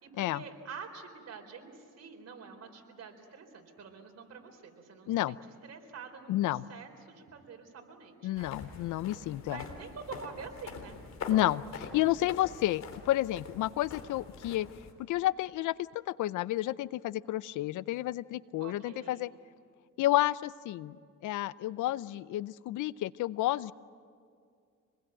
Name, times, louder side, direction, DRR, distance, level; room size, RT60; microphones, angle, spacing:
voice 1, 0.0-8.9 9.4-11.0 18.6-19.4, right 5 dB, 55° right, 4 dB, 4.2 m, -47 dB
voice 2, 6.3-6.6 8.2-9.6 11.3-14.7 15.1-19.3 20.0-21.0 21.2-23.7, left 15 dB, 85° left, 19 dB, 0.6 m, -30 dB
sound 1, 8.4-14.9, left 4 dB, 60° left, 3.7 m, -45 dB
26.5 x 21.0 x 9.0 m, 2.3 s
cardioid pair, 90°, 30 cm